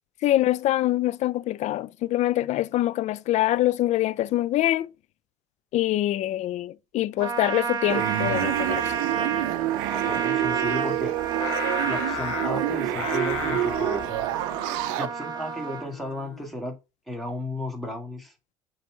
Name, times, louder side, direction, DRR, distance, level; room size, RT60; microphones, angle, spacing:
voice 1, 0.2-4.9 5.7-8.9, left 14 dB, 45° left, 0.4 m, -24 dB
Trumpet, 7.2-15.9, right 7 dB, 25° right, 1.8 m, -31 dB
sound 1, 7.9-15.1, right 15 dB, 65° right, 0.5 m, -28 dB
voice 2, 9.8-11.2 11.9-14.1 15.0-16.8 17.1-18.3, left 1 dB, ahead, 2.1 m, -34 dB
Singing, 11.4-16.6, left 8 dB, 85° left, 1.1 m, -36 dB
6.6 x 3.2 x 4.7 m
hypercardioid pair, 70°, 16 cm